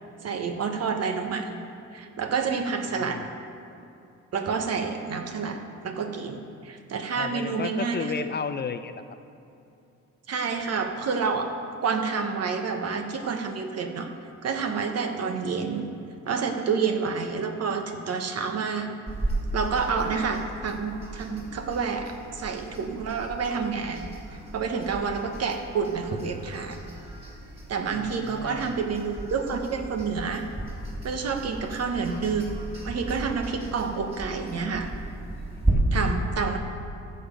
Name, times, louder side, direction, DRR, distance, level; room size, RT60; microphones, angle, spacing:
voice 1, 0.2-1.6 1.9-3.2 4.3-8.3 10.3-11.6 11.8-14.1 14.4-15.9 16.3-19.0 19.5-26.9 27.7-30.5 31.0-32.6 32.8-34.9 35.9-36.6, right 5 dB, 55° right, 5 dB, 1.1 m, -29 dB
voice 2, 7.1-9.0 27.9-28.8 35.5-35.8, left 6 dB, 35° left, 10 dB, 0.5 m, -34 dB
sound 1, 19.1-35.7, right 1 dB, 20° right, 3.0 m, -36 dB
14.0 x 6.7 x 5.1 m, 2.6 s
cardioid pair, 90°, 30 cm